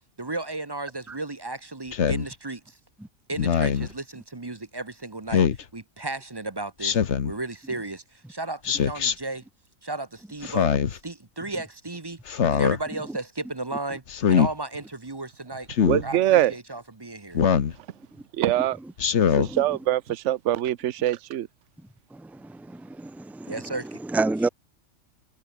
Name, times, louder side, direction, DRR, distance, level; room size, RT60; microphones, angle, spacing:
voice 1, 0.2-2.8 3.3-8.0 8.3-9.4 9.8-12.2 12.5-14.0 14.3-15.7 16.0-17.5 23.5-24.0, right 2 dB, 20° right, 0.9 m, -34 dB
Speech synthesizer, 1.9-2.3 3.4-3.9 5.3-5.6 6.8-7.3 8.6-9.1 10.4-11.0 12.3-12.8 14.1-14.5 15.7-16.0 17.3-17.7 19.0-19.5, left 7 dB, 60° left, 1.4 m, -22 dB
voice 2, 15.9-16.5 18.3-18.8 19.4-21.5, right 13 dB, 65° right, 1.0 m, -23 dB
voice 3, 19.3-19.8 22.1-24.5, right 3 dB, 5° right, 0.3 m, -30 dB
omnidirectional pair, 1.4 m